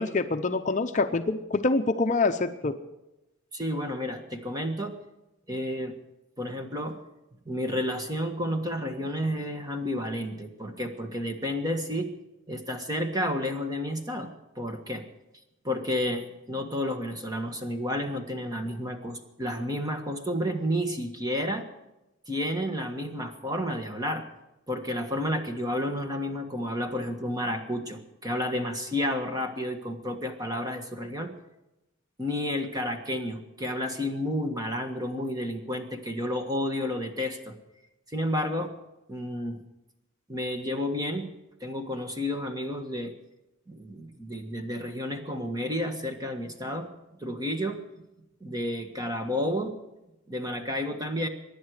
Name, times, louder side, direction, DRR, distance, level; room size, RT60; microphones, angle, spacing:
voice 1, 0.0-2.8, left 3 dB, 35° left, 7 dB, 0.6 m, -26 dB
voice 2, 3.5-5.0 5.5-6.0 6.4-7.0 7.4-12.1 12.5-15.0 15.6-21.6 22.3-24.2 24.7-31.3 32.2-37.5 38.1-38.7 39.1-39.6 40.3-41.3 41.6-43.1 43.7-46.9 47.2-48.0 48.4-49.8 50.3-51.3, left 1 dB, 20° right, 5 dB, 1.5 m, -31 dB
24.0 x 10.5 x 4.9 m, 0.95 s
head